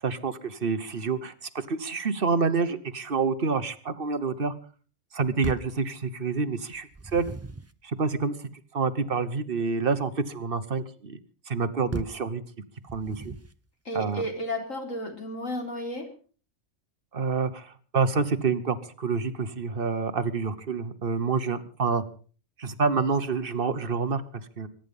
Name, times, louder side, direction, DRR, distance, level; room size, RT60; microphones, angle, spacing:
voice 1, 0.0-4.5 5.1-7.3 7.8-8.3 8.7-11.2 11.5-12.4 12.9-13.3 13.9-14.2 17.1-22.0 22.6-24.7, right 4 dB, 45° right, 11 dB, 1.3 m, -28 dB
sound 1, 5.4-5.8 6.7-7.8 11.9-12.3 12.9-13.6, right 2 dB, 20° right, 0.4 m, -37 dB
voice 2, 13.9-16.1, equal, 80° left, 3 dB, 4.1 m, -32 dB
23.0 x 10.5 x 5.4 m, 0.41 s
omnidirectional pair, 1.3 m